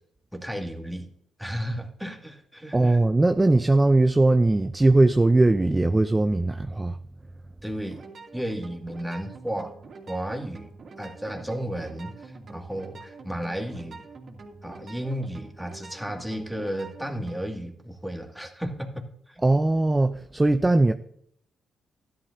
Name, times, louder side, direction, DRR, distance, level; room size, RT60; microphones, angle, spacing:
voice 1, 0.3-1.1 1.4-3.0 7.6-8.0 8.3-9.8 10.1-10.7 11.0-14.0 14.6-19.4, equal, ahead, 2.2 m, -33 dB
voice 2, 2.7-7.0 19.4-20.9, right 2 dB, 20° right, 0.6 m, -20 dB
sound 1, 7.8-17.4, right 3 dB, 55° right, 2.6 m, -45 dB
13.0 x 11.5 x 2.7 m
cardioid pair, 70°, 0 cm